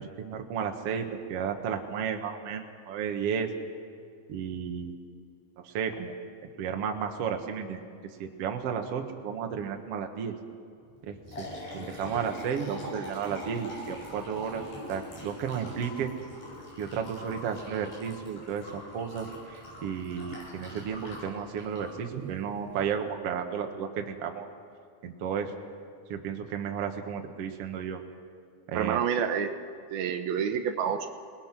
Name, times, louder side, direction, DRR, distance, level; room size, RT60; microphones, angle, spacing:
voice 1, 0.2-3.5 4.3-5.0 5.6-6.2 6.6-7.8 8.2-10.3 11.0-11.5 11.7-14.6 14.9-16.1 16.8-24.5 25.0-25.5 26.1-28.0 28.7-29.0, right 7 dB, 55° right, 4 dB, 1.8 m, -33 dB
Liquid, 10.9-22.9, left 1 dB, 75° left, 8.4 m, -43 dB
voice 2, 28.7-29.5 29.9-31.1, right 8 dB, 75° right, 7 dB, 2.6 m, -28 dB
27.5 x 20.0 x 6.1 m, 2.4 s
omnidirectional pair, 4.5 m